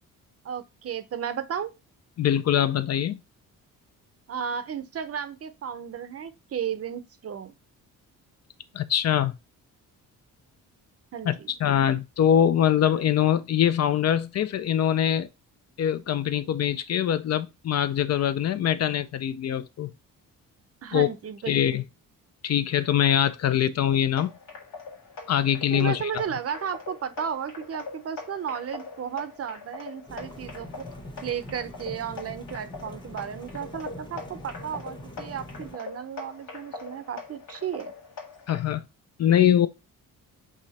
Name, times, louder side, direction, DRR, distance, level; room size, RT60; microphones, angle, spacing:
voice 1, 0.4-1.7 4.3-7.5 11.1-11.5 20.8-21.8 25.7-30.9 31.2-37.9, right 8 dB, 45° right, 0.6 m, -34 dB
voice 2, 2.2-3.2 8.7-9.3 11.2-15.3 15.8-19.9 20.9-21.1 21.5-21.8 22.4-24.3 25.3-26.1 38.5-38.8 39.2-39.7, left 10 dB, 50° left, 0.5 m, -23 dB
sound 1, 23.9-38.6, left 4 dB, 80° left, 1.4 m, -42 dB
sound 2, 30.1-35.8, equal, 15° left, 0.8 m, -43 dB
4.8 x 2.5 x 4.1 m
cardioid pair, 90°, 34 cm